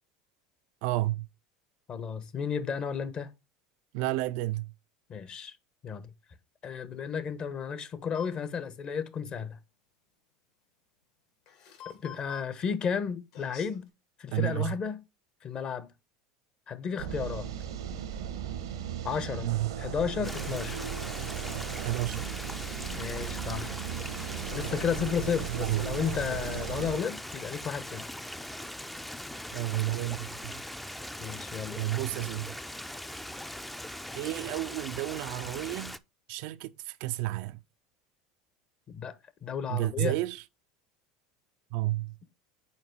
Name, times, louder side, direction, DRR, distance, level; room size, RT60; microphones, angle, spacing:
voice 1, 0.8-1.3 3.9-4.7 14.3-14.7 19.4-19.7 21.8-22.3 25.5-26.0 29.5-30.5 31.7-32.5 34.1-36.0 36.3-37.6 39.7-40.4 41.7-42.2, right 17 dB, 65° right, 0.4 m, -31 dB
voice 2, 1.9-3.3 5.1-5.6 5.8-6.1 6.6-9.6 11.8-13.9 14.2-15.0 15.4-15.9 16.7-17.5 19.0-19.5 19.8-20.8 22.9-23.8 24.5-28.1 31.2-31.8 38.9-39.1 39.4-40.2, left 7 dB, 40° left, 1.0 m, -33 dB
sound 1, 8.1-8.3 11.5-12.5 13.3-13.8, left 9 dB, 70° left, 2.8 m, -47 dB
sound 2, 17.0-27.0, right 9 dB, 85° right, 1.0 m, -36 dB
Stream, 20.2-36.0, left 1 dB, 5° left, 0.4 m, -40 dB
5.7 x 4.5 x 4.4 m
hypercardioid pair, 90°, 2 cm